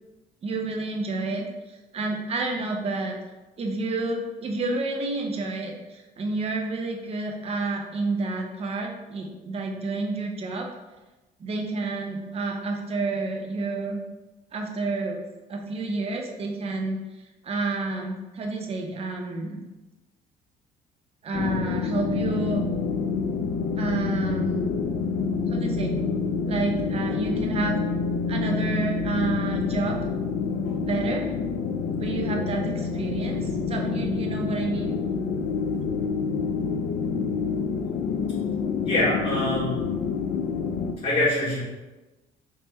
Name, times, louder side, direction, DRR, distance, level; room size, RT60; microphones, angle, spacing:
voice 1, 0.4-3.2 3.6-10.7 11.4-14.0 14.5-15.2 15.5-17.0 17.4-19.6 21.2-22.7 23.8-24.7 25.5-26.0 26.5-27.8 28.3-30.0 30.8-31.3 32.0-35.0, right 3 dB, 35° right, 2 dB, 0.6 m, -29 dB
sound 1, 21.3-40.9, left 5 dB, 75° left, 0.4 m, -27 dB
voice 2, 38.8-39.8 41.0-41.6, left 1 dB, 40° left, -8 dB, 1.2 m, -24 dB
3.2 x 3.2 x 3.2 m, 1.1 s
cardioid pair, 110°, 17 cm